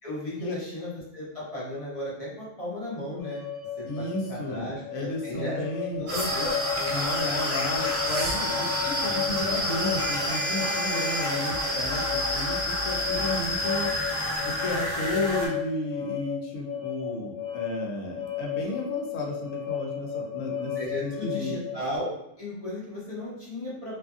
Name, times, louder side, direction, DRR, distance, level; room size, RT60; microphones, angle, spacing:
voice 1, 0.0-3.4 3.8-5.6 5.9-6.9 13.1-13.2 20.7-24.0, left 1 dB, 30° left, -8 dB, 0.9 m, -35 dB
sound 1, 3.2-22.0, left 10 dB, 60° left, 0.6 m, -34 dB
voice 2, 3.8-6.1 6.9-13.9 14.4-21.5, left 1 dB, 85° left, 0 dB, 1.0 m, -33 dB
sound 2, 6.1-15.5, equal, 30° right, 0.9 m, -29 dB
sound 3, 6.1-7.1 7.9-8.4 8.7-9.2 9.4-9.6 9.9-10.2 11.2-11.3, right 1 dB, 65° right, 0.3 m, -38 dB
2.6 x 2.5 x 2.4 m, 0.81 s
omnidirectional pair, 1.3 m